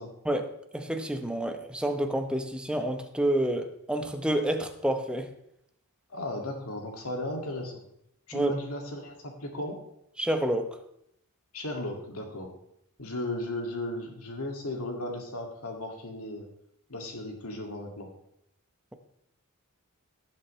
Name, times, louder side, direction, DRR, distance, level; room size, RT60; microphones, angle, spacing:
voice 1, 0.2-5.3 8.3-8.5 10.2-10.8, right 1 dB, 5° right, 0.8 m, -29 dB
voice 2, 6.1-7.8 8.3-9.8 11.5-12.5 13.0-16.5 16.9-18.1, left 1 dB, 80° left, 2.2 m, -35 dB
17.0 x 7.3 x 3.2 m
head